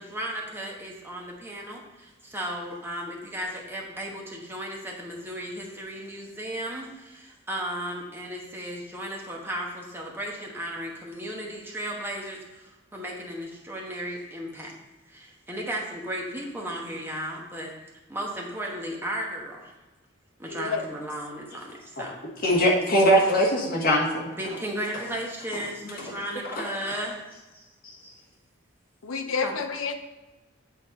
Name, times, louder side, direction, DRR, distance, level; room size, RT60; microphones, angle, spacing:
voice 1, 0.0-14.7 15.1-17.7 18.1-19.7 20.4-22.2 24.4-27.2 28.0-28.2 29.4-29.6, right 1 dB, 10° right, -2 dB, 1.1 m, -35 dB
voice 2, 20.5-20.8 29.0-29.9, left 5 dB, 90° left, 7 dB, 0.6 m, -29 dB
voice 3, 22.4-24.3 26.5-26.6, equal, 45° left, -2 dB, 1.4 m, -21 dB
8.3 x 4.1 x 4.0 m, 1.1 s
head